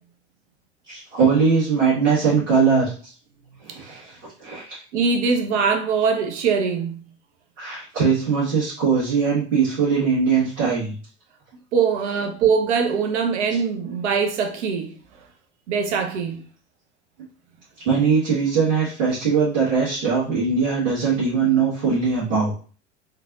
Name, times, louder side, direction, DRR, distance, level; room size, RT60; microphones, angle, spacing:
voice 1, 0.9-2.9 3.6-4.8 7.6-10.9 17.8-22.5, right 5 dB, 85° right, 1.7 m, -21 dB
voice 2, 4.9-7.0 11.7-14.9 15.7-16.4, right 5 dB, 65° right, 0.8 m, -22 dB
3.5 x 3.2 x 2.4 m
hypercardioid pair, 75°, 36 cm